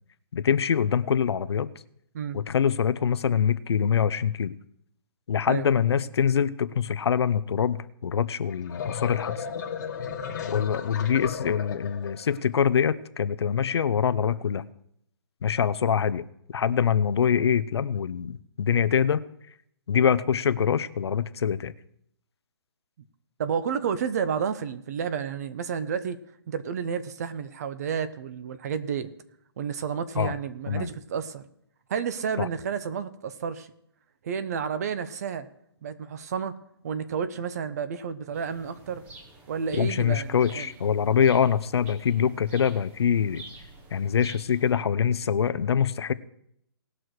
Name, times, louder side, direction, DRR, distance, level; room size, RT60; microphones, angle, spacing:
voice 1, 0.3-1.7 2.3-4.5 5.3-9.4 10.5-14.6 15.4-19.2 19.9-21.7 30.2-30.3 30.7-30.9 32.4-32.5 39.7-43.4 43.9-46.1, left 7 dB, 70° left, 15 dB, 0.6 m, -24 dB
sound 1, 8.5-12.4, left 7 dB, 40° left, 1.3 m, -34 dB
voice 2, 23.4-26.2 26.5-29.1 29.6-31.4 31.9-33.7 34.2-35.5 35.8-36.6 36.8-39.0 39.5-40.7, right 7 dB, 35° right, 13 dB, 0.8 m, -31 dB
sound 2, 38.3-44.7, right 2 dB, 10° right, 0.9 m, -49 dB
18.5 x 6.2 x 4.8 m, 0.74 s
hypercardioid pair, 165°, 14 cm